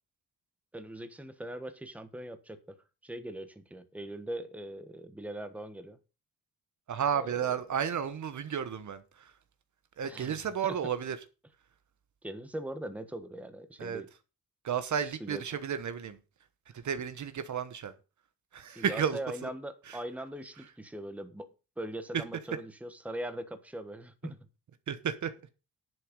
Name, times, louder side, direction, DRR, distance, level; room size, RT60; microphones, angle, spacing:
voice 1, 0.7-2.6 3.0-6.0 7.1-7.5 10.0-10.4 10.6-10.8 12.2-14.1 15.2-15.4 18.7-21.5 21.8-24.4, right 1 dB, 5° right, 1.2 m, -41 dB
voice 2, 6.9-9.3 10.0-11.2 13.8-14.0 14.6-16.2 16.7-17.9 18.5-19.5 19.9-20.0 24.9-25.3, right 8 dB, 50° right, 1.1 m, -32 dB
11.0 x 7.9 x 5.3 m
cardioid pair, 145°, 38 cm